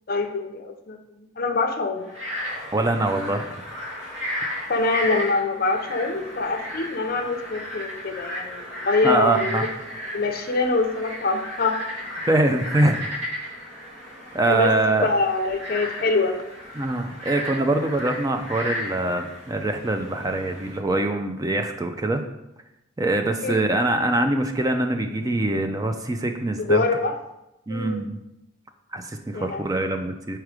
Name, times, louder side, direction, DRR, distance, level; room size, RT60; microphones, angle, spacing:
voice 1, 0.1-2.1 4.7-9.7 10.1-11.8 14.4-14.7 15.0-16.4 23.4-23.6 26.6-27.1 27.7-28.1 29.3-29.6, left 3 dB, 50° left, 6 dB, 0.6 m, -24 dB
Frog, 2.0-20.8, left 1 dB, 75° right, 2.0 m, -34 dB
voice 2, 2.7-3.5 9.0-9.7 12.3-13.1 14.3-15.1 16.8-22.2 23.0-26.8 27.7-28.2 28.9-30.4, right 2 dB, 20° right, 6 dB, 0.4 m, -23 dB
4.7 x 4.5 x 4.9 m, 0.89 s
head